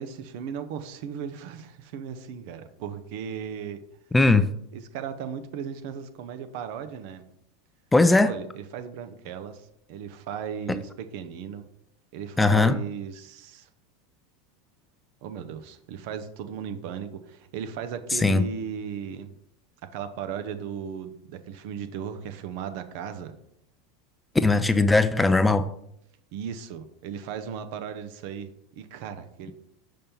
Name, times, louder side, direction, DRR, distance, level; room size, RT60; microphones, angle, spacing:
voice 1, 0.0-3.8 4.7-7.2 8.2-11.7 12.1-13.7 15.2-19.3 19.8-23.3 26.3-28.5 28.8-29.5, right 8 dB, 60° right, 0.7 m, -36 dB
voice 2, 4.1-4.5 7.9-8.3 12.4-12.8 18.1-18.4 24.4-25.7, left 3 dB, 10° left, 0.4 m, -19 dB
5.4 x 5.3 x 4.3 m
hypercardioid pair, 85°, 0 cm